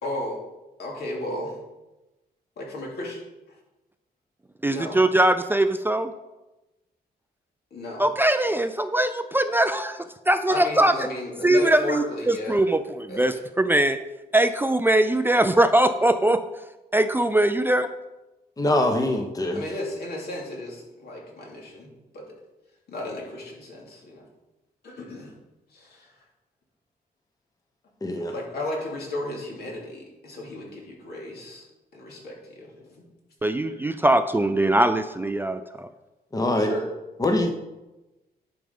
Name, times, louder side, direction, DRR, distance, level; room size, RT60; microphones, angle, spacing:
voice 1, 0.0-0.4 0.8-1.5 2.6-3.2 4.7-5.0 7.7-8.0 10.5-12.6 13.1-13.3 19.5-22.2 22.9-24.3 24.8-25.3 25.7-26.1 28.2-31.6 31.9-33.0 36.6-36.8, left 2 dB, 70° left, -2 dB, 2.8 m, -34 dB
voice 2, 4.6-6.1 8.0-11.1 11.4-14.0 14.3-16.4 16.9-17.9 33.4-35.9, right 1 dB, 15° right, 9 dB, 0.4 m, -21 dB
voice 3, 18.6-19.6 28.0-28.3 36.3-36.7 37.2-37.5, left 1 dB, 20° left, 4 dB, 0.9 m, -23 dB
11.0 x 5.3 x 5.3 m, 1.0 s
wide cardioid pair, 125°, 17 cm